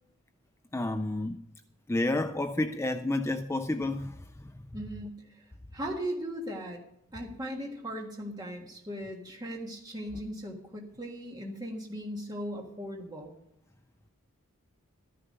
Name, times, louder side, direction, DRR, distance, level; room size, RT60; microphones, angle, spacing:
voice 1, 0.7-1.4 1.9-4.1, left 2 dB, 10° left, 0.4 m, -30 dB
voice 2, 4.7-5.4 5.7-6.8 7.1-13.3, equal, 15° right, 1.6 m, -38 dB
13.5 x 10.5 x 5.3 m
head